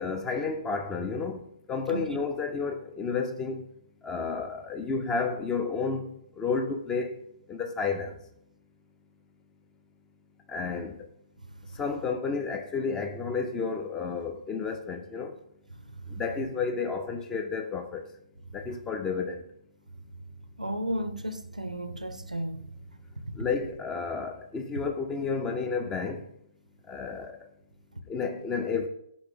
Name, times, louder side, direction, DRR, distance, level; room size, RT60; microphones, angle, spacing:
voice 1, 0.0-1.4 1.7-3.6 4.0-6.1 6.4-7.2 7.5-8.1 10.5-11.0 11.8-15.3 16.2-18.0 18.5-19.4 23.4-26.2 26.9-27.4 28.1-28.9, left 5 dB, 15° left, 0.3 m, -31 dB
voice 2, 20.6-22.6, right 1 dB, 85° right, 0.4 m, -33 dB
3.9 x 3.0 x 3.5 m
figure-of-eight pair, 125°, 4 cm